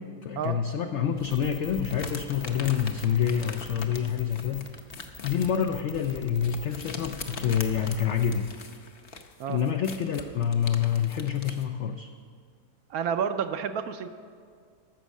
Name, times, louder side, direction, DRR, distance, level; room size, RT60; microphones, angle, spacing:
voice 1, 0.0-4.7 5.2-8.5 9.5-12.1, left 8 dB, 80° left, 7 dB, 0.6 m, -27 dB
sound 1, 1.2-11.6, left 4 dB, 50° left, 0.8 m, -42 dB
sound 2, 1.3-8.4, left 3 dB, 10° left, 0.7 m, -45 dB
voice 2, 12.9-14.1, right 7 dB, 70° right, 9 dB, 1.0 m, -29 dB
13.5 x 6.3 x 7.2 m, 2.1 s
omnidirectional pair, 1.8 m